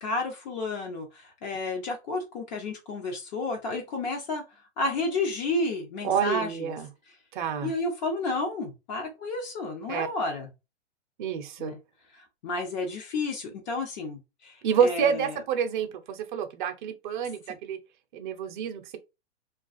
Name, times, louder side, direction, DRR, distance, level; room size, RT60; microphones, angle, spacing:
voice 1, 0.0-4.4 4.8-6.8 7.6-10.5 11.6-11.8 12.1-15.4, left 2 dB, 40° left, 0.7 m, -31 dB
voice 2, 6.0-6.9 7.3-7.7 9.9-10.1 11.2-11.7 14.6-17.8 18.1-19.0, right 7 dB, 45° right, 0.6 m, -28 dB
2.3 x 2.3 x 2.4 m
hypercardioid pair, 130°, 34 cm